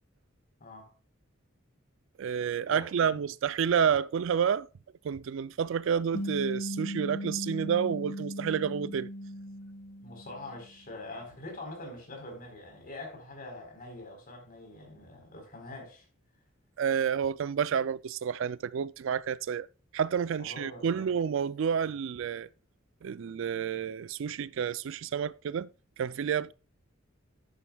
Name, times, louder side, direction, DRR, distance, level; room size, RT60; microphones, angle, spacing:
voice 1, 0.6-0.9 2.7-3.2 10.0-16.0 20.4-21.1, left 2 dB, 45° left, 4.0 m, -44 dB
voice 2, 2.2-4.7 5.0-9.1 16.8-19.7 19.9-22.5 23.0-25.7 26.0-26.5, right 7 dB, 70° right, 0.4 m, -29 dB
sound 1, 6.1-10.8, equal, 65° left, 2.1 m, -38 dB
10.5 x 9.1 x 2.3 m
head